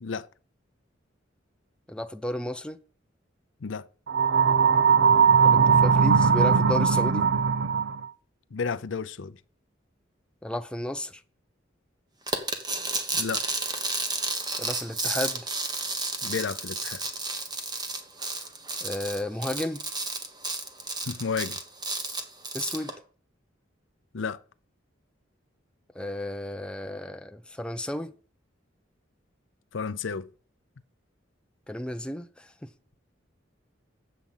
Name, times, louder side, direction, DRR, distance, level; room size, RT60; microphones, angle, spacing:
voice 1, 1.9-2.8 5.4-7.2 10.4-11.2 14.6-15.5 18.8-19.8 22.5-22.9 25.9-28.1 31.7-32.7, left 1 dB, 5° left, 0.6 m, -33 dB
sound 1, 4.1-8.1, right 6 dB, 65° right, 0.6 m, -20 dB
voice 2, 8.5-9.4 13.1-13.4 16.2-17.0 21.0-21.6 24.1-24.4 29.7-30.3, left 5 dB, 75° left, 0.6 m, -32 dB
sound 2, 12.3-22.9, right 3 dB, 20° right, 1.4 m, -32 dB
8.6 x 7.6 x 5.5 m
head